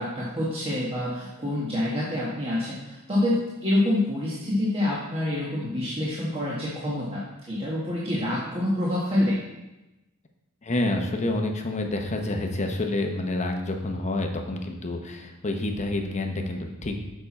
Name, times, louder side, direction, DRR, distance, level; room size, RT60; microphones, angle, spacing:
voice 1, 0.0-9.4, left 1 dB, 25° right, -7 dB, 1.3 m, -27 dB
voice 2, 10.6-16.9, left 2 dB, 35° left, 3 dB, 0.9 m, -28 dB
6.9 x 6.0 x 4.2 m, 1.0 s
head